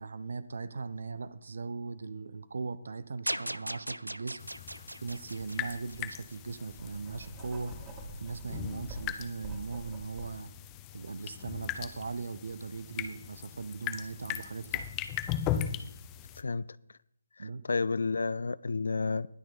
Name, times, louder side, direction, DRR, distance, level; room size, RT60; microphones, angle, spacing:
voice 1, 0.0-4.4 5.0-7.7 8.2-10.5 10.9-14.9 17.4-17.6, right 4 dB, 60° right, 0.7 m, -39 dB
sound 1, 3.3-6.5, right 1 dB, 90° right, 0.4 m, -38 dB
sound 2, 4.4-16.4, left 10 dB, 20° left, 0.7 m, -39 dB
Writing, 5.3-5.4 5.9-10.3, right 2 dB, 20° right, 2.3 m, -45 dB
voice 2, 17.4-19.3, left 4 dB, 60° left, 0.4 m, -31 dB
19.5 x 6.5 x 4.1 m
figure-of-eight pair, 145°, 0 cm